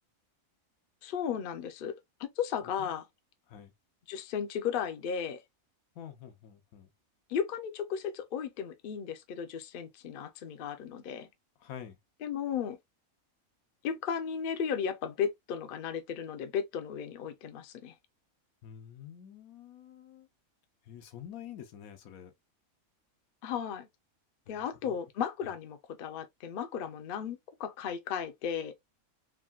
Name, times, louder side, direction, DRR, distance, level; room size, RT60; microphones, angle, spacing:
voice 1, 1.0-3.1 4.1-5.4 7.3-11.3 12.2-12.8 13.8-17.9 23.4-23.9 24.5-28.7, left 7 dB, 60° left, 0.6 m, -35 dB
voice 2, 5.9-6.9 11.6-12.0 18.6-20.3 20.9-22.3 24.5-24.9, left 9 dB, 90° left, 1.2 m, -47 dB
3.6 x 2.2 x 2.3 m
omnidirectional pair, 1.4 m